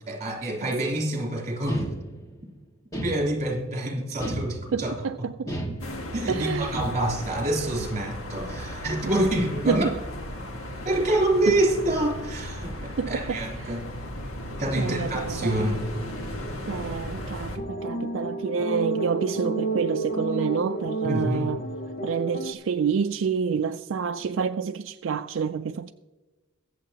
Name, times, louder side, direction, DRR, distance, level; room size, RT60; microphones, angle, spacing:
voice 1, 0.1-1.8 3.0-4.9 6.1-9.9 10.8-13.9 14.6-15.9 21.0-21.6, right 1 dB, 35° right, 3.3 m, -26 dB
sound 1, 1.7-2.4 2.9-3.7 4.2-5.0 5.5-6.3 6.7-7.3, right 1 dB, 15° left, 1.6 m, -33 dB
voice 2, 4.7-5.5 6.3-6.8 9.1-9.3 9.7-9.8 11.5-11.6 13.0-13.4 13.6-13.7 14.8-15.7 16.7-21.6 22.0-25.9, right 6 dB, 70° right, 0.4 m, -28 dB
sound 2, 5.8-17.6, left 1 dB, 85° left, 1.5 m, -36 dB
sound 3, 17.6-22.5, right 3 dB, 45° left, 0.7 m, -31 dB
23.0 x 7.6 x 2.9 m
head